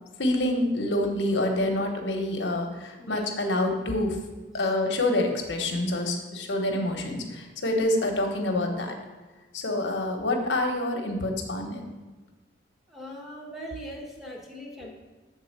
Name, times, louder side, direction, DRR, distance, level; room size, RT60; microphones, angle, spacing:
voice 1, 0.2-4.2 4.5-9.0 9.5-11.8, left 1 dB, 75° left, 3 dB, 1.1 m, -27 dB
voice 2, 3.0-3.3 4.6-4.7 12.9-14.9, equal, ahead, -3 dB, 1.1 m, -40 dB
7.5 x 3.9 x 6.6 m, 1.3 s
head